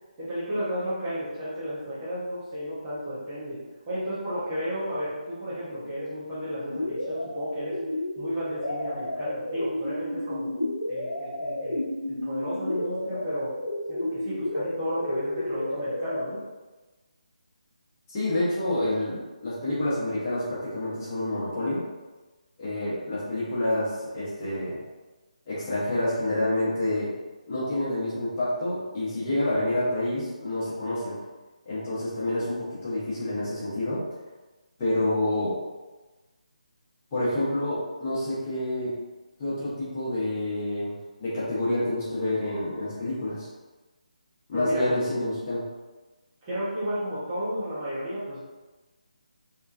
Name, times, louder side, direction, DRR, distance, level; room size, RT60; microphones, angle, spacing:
voice 1, 0.2-3.6 3.9-7.8 8.2-10.5 10.9-11.8 12.2-13.5 13.9-16.4 44.5-45.1 46.4-48.4, equal, 20° right, -11 dB, 0.8 m, -33 dB
sound 1, 6.7-16.2, left 1 dB, 75° left, 0.4 m, -32 dB
voice 2, 18.1-21.8 22.6-24.8 25.5-27.1 27.5-31.2 31.6-34.0 34.8-35.6 37.1-39.0 39.4-43.5 44.5-45.6, left 1 dB, 20° left, -11 dB, 0.9 m, -28 dB
3.0 x 2.2 x 2.4 m, 1.2 s
figure-of-eight pair, 150°, 4 cm